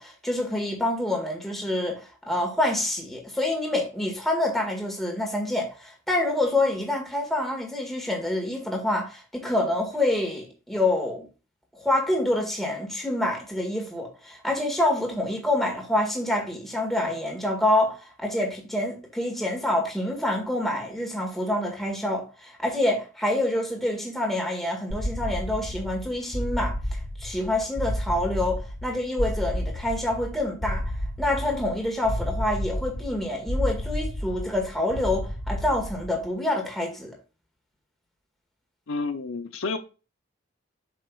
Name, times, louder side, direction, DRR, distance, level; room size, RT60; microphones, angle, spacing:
voice 1, 0.0-11.3 11.7-26.8 27.2-37.2, left 1 dB, ahead, 2.0 m, -27 dB
sound 1, 24.9-36.3, equal, 60° left, 1.6 m, -31 dB
voice 2, 38.9-39.8, left 3 dB, 75° left, 0.7 m, -30 dB
7.8 x 6.6 x 2.5 m
head